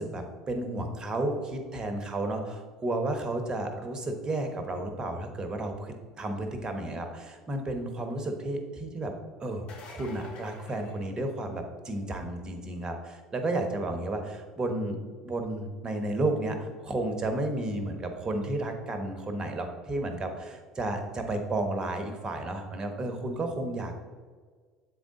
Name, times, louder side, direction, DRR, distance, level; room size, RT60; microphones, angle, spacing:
voice 1, 0.0-9.1 9.4-15.0 15.2-23.9, right 2 dB, 30° right, 5 dB, 1.0 m, -32 dB
sound 1, 9.5-11.7 17.3-17.4 19.2-19.3, left 3 dB, 50° left, 1.0 m, -49 dB
7.8 x 3.8 x 3.7 m, 1.5 s
hypercardioid pair, 70°, 3 cm